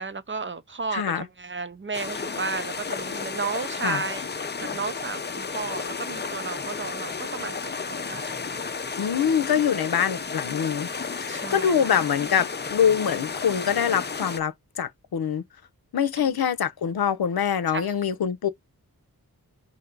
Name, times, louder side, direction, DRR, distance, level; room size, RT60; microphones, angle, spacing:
voice 1, 0.0-4.3 4.6-8.6 11.3-11.9 16.2-16.5 17.7-17.9, right 4 dB, 35° right, 0.5 m, -33 dB
voice 2, 0.9-1.2 3.8-4.0 9.0-10.9 11.2-15.4 15.9-18.5, left 8 dB, 85° left, 0.7 m, -24 dB
sound 1, 1.9-14.4, left 5 dB, 30° left, 0.5 m, -33 dB
4.6 x 2.8 x 3.8 m
wide cardioid pair, 115°, 36 cm